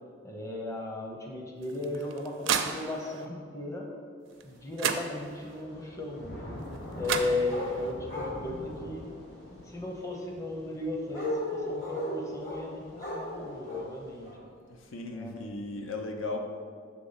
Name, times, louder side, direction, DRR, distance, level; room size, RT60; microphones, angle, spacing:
voice 1, 0.2-3.9 4.4-6.5 7.0-9.1 9.6-14.3 15.1-15.3, left 2 dB, 15° left, 0 dB, 0.7 m, -36 dB
sound 1, 1.6-3.3 4.4-4.5 4.8-5.6 6.7-6.8 7.0-7.9, right 7 dB, 70° right, 0.4 m, -32 dB
Thunder / Rain, 4.3-14.3, left 1 dB, 55° left, 1.5 m, -46 dB
sound 2, 7.5-7.7 8.1-8.4 11.1-12.6 13.0-13.9 14.2-14.4, left 1 dB, 40° left, 1.4 m, -35 dB
voice 2, 14.7-16.4, left 3 dB, 80° left, 3 dB, 0.7 m, -37 dB
6.6 x 3.4 x 5.6 m, 2.1 s
head